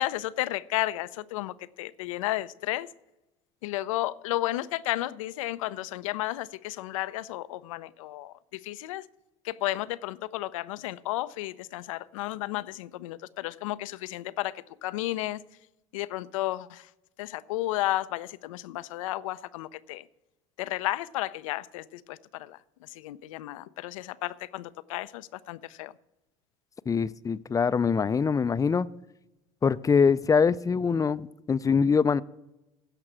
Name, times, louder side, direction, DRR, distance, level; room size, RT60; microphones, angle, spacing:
voice 1, 0.0-2.9 3.6-9.0 9.4-15.4 15.9-16.9 17.2-20.1 20.6-25.9, left 16 dB, 85° left, 0.5 m, -33 dB
voice 2, 26.9-28.9 29.6-32.2, left 5 dB, 20° left, 0.4 m, -23 dB
15.5 x 5.8 x 6.1 m
hypercardioid pair, 80°, 17 cm